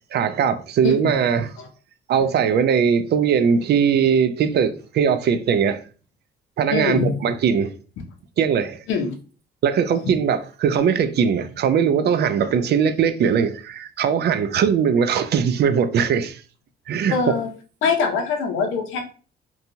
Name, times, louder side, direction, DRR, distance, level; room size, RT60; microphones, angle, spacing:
voice 1, 0.1-1.5 2.1-5.8 6.6-7.7 8.4-8.8 9.6-16.4 16.9-17.2, right 7 dB, 55° right, 0.4 m, -20 dB
voice 2, 6.7-7.1 8.9-9.1 17.1-17.5 17.8-19.0, left 5 dB, 85° left, 0.6 m, -23 dB
2.6 x 2.3 x 2.8 m
cardioid pair, 90°, 20 cm